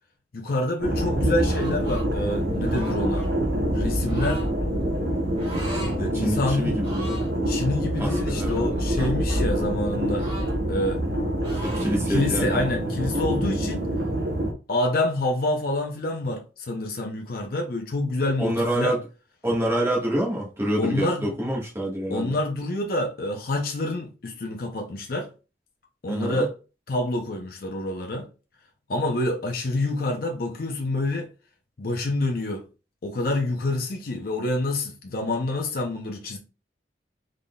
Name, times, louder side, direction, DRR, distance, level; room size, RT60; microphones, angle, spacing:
voice 1, 0.3-3.3 3.7-4.4 6.0-6.8 7.5-10.3 10.7-11.0 12.1-13.9 14.7-18.9 20.8-21.3 22.1-25.3 26.0-26.5 26.9-28.3 28.9-31.3 31.8-32.7 33.0-36.4, left 2 dB, 55° left, 0.6 m, -27 dB
sound 1, 0.8-14.5, right 1 dB, 65° right, 0.7 m, -27 dB
sound 2, 0.9-10.8, equal, 10° left, 0.3 m, -32 dB
sound 3, 1.5-2.1 2.6-3.3 4.1-4.5 5.4-6.0 6.3-6.4 6.8-7.3 8.0-9.4 10.2-11.2 11.4-12.0, right 1 dB, 35° right, 2.1 m, -39 dB
voice 2, 6.1-7.1 8.0-8.7 11.6-12.6 18.4-19.0 19.4-22.4 26.1-26.5, right 1 dB, 15° right, 1.3 m, -27 dB
3.8 x 3.6 x 2.2 m
head